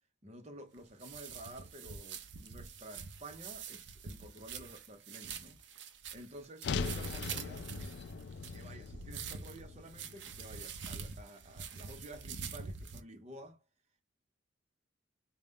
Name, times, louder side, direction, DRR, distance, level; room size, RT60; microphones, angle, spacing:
voice 1, 0.2-5.6 6.1-7.7 8.5-13.6, right 1 dB, 35° right, 0.8 m, -51 dB
sound 1, 0.8-13.0, right 6 dB, 65° right, 0.5 m, -46 dB
sound 2, 6.6-10.9, left 4 dB, 55° left, 0.3 m, -40 dB
3.9 x 2.3 x 3.6 m
head